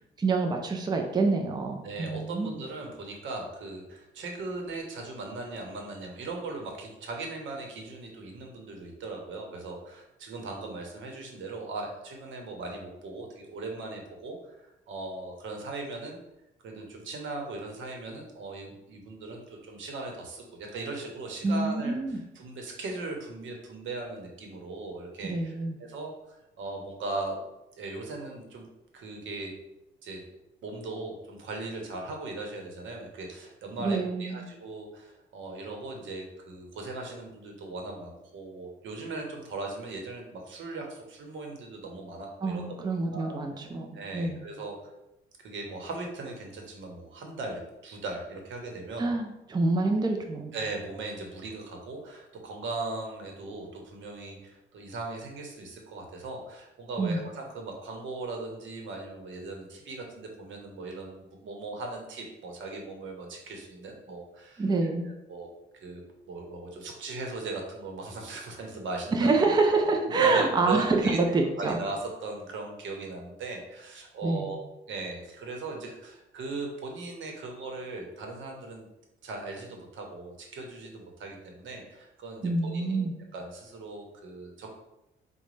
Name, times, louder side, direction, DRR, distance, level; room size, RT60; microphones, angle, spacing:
voice 1, 0.2-2.5 21.4-22.2 25.2-25.7 33.8-34.4 42.4-43.9 44.1-44.4 49.0-50.5 57.0-57.2 64.6-65.1 69.1-71.7 74.2-74.5 82.4-83.1, right 3 dB, 20° right, 3 dB, 0.4 m, -26 dB
voice 2, 1.8-16.2 16.6-27.4 27.8-28.7 28.9-29.5 30.0-30.2 30.6-42.6 43.1-43.4 43.9-44.8 45.4-49.1 50.5-65.5 65.8-66.0 66.3-69.3 70.1-74.6 74.9-78.9 79.2-83.1 83.3-84.7, right 3 dB, 75° right, 1 dB, 0.9 m, -38 dB
4.9 x 2.2 x 3.1 m, 0.92 s
cardioid pair, 90°, 20 cm